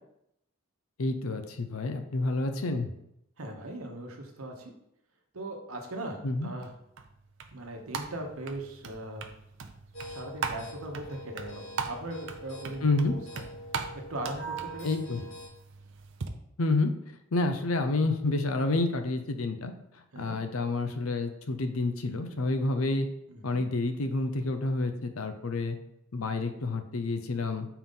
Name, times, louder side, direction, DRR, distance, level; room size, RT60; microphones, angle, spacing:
voice 1, 1.0-2.9 6.2-6.5 12.8-13.1 14.8-15.2 16.6-16.9 17.3-19.7 20.2-23.1 23.4-25.8 26.1-27.7, left 2 dB, 85° left, 8 dB, 0.6 m, -29 dB
voice 2, 3.4-4.7 5.3-6.7 7.5-9.2 10.0-13.2 14.1-14.9 15.2-15.3 20.1-20.4 23.3-23.4, right 1 dB, 90° right, 3 dB, 1.0 m, -39 dB
sound 1, 6.6-16.3, right 5 dB, 60° right, 0.6 m, -40 dB
sound 2, 9.9-15.5, right 2 dB, 70° left, 2.2 m, -43 dB
4.6 x 3.8 x 5.4 m, 0.79 s
head